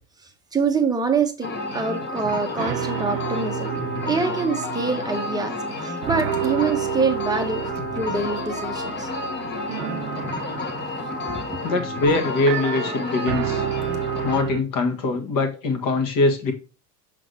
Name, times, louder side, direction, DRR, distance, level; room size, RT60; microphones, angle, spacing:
voice 1, 0.5-3.8 4.0-7.7 7.9-9.1 11.3-11.6, right 4 dB, 10° right, 0.8 m, -25 dB
sound 1, 1.4-14.4, left 2 dB, 20° left, 1.0 m, -30 dB
sound 2, 2.6-5.8 6.0-14.6, right 12 dB, 80° right, 0.7 m, -31 dB
voice 2, 11.6-13.6 14.2-16.5, left 3 dB, 40° left, 1.7 m, -23 dB
6.5 x 3.8 x 3.9 m
supercardioid pair, 130°, 48 cm